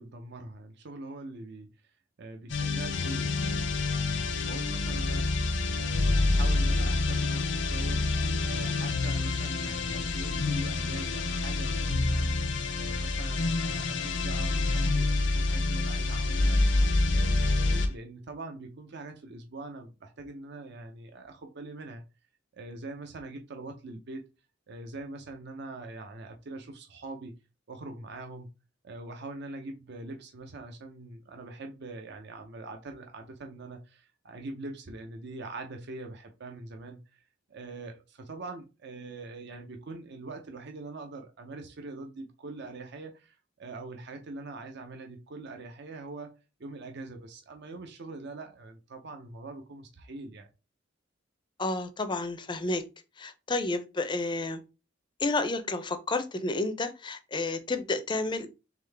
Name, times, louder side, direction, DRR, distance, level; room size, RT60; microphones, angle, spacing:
voice 1, 0.0-1.7 2.2-3.7 4.4-5.3 5.7-16.7 17.1-22.0 22.5-24.3 24.7-27.3 27.7-28.5 28.8-37.2 37.5-46.3 46.6-50.5, right 2 dB, 60° right, 0.6 m, -43 dB
sound 1, 2.5-17.9, left 3 dB, 65° left, 0.7 m, -27 dB
voice 2, 51.6-52.8 53.2-54.6 55.2-58.5, left 2 dB, 25° left, 0.5 m, -31 dB
3.7 x 3.5 x 3.3 m
head